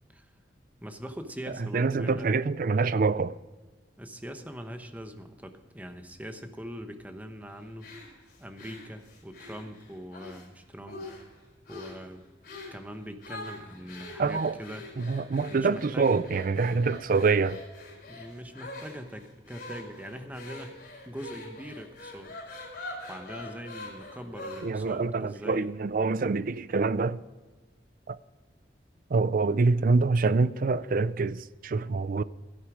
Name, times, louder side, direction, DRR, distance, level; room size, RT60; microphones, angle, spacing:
voice 1, 0.8-2.3 4.0-11.1 11.7-12.3 12.7-14.9 15.5-16.1 18.1-20.8 21.1-22.4 23.1-25.7, equal, 10° right, 1.0 m, -42 dB
voice 2, 1.6-3.4 14.2-14.6 15.0-17.6 24.6-27.2 28.1-28.2 29.1-32.2, right 4 dB, 50° right, 0.4 m, -26 dB
sound 1, 7.8-10.5 10.9-11.3 11.7-12.0 12.4-12.8 13.2-24.9, left 2 dB, 55° left, 4.7 m, -44 dB
13.5 x 11.0 x 5.0 m
head